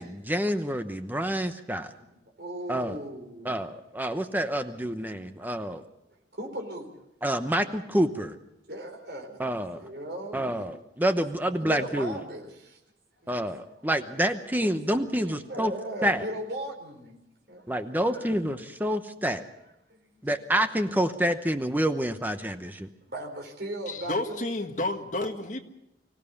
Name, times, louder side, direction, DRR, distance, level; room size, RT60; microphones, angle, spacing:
voice 1, 0.0-1.9 2.7-3.0 3.4-5.8 7.2-8.4 9.4-9.8 10.3-12.1 13.3-15.7 16.0-16.2 17.7-19.4 20.2-22.9, right 1 dB, 10° right, 0.9 m, -28 dB
voice 2, 2.0-3.6 5.4-5.7 6.3-6.9 8.7-9.4 9.7-10.7 11.6-12.8 13.2-13.4 14.9-17.2 17.5-18.4 19.9-20.1 23.1-24.5 25.2-25.3, right 1 dB, 65° right, 4.3 m, -38 dB
voice 3, 23.9-25.6, left 2 dB, 45° left, 1.8 m, -31 dB
25.0 x 16.5 x 7.1 m
head